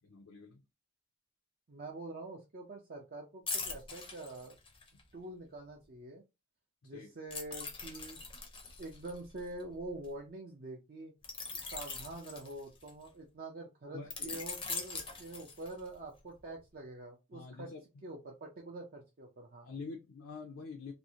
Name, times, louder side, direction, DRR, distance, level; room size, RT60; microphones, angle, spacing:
voice 1, 0.0-0.6 6.8-7.1 13.9-14.4 17.3-18.1 19.6-20.9, left 4 dB, 70° left, 0.5 m, -46 dB
voice 2, 1.7-4.6 5.1-6.2 6.8-8.2 8.8-11.1 11.7-17.7 18.0-19.7, right 2 dB, 45° right, 0.5 m, -45 dB
sound 1, 3.5-5.0 7.3-10.1 11.2-13.1 14.1-15.9 16.4-16.6, left 4 dB, 25° left, 0.5 m, -42 dB
2.5 x 2.0 x 2.7 m
head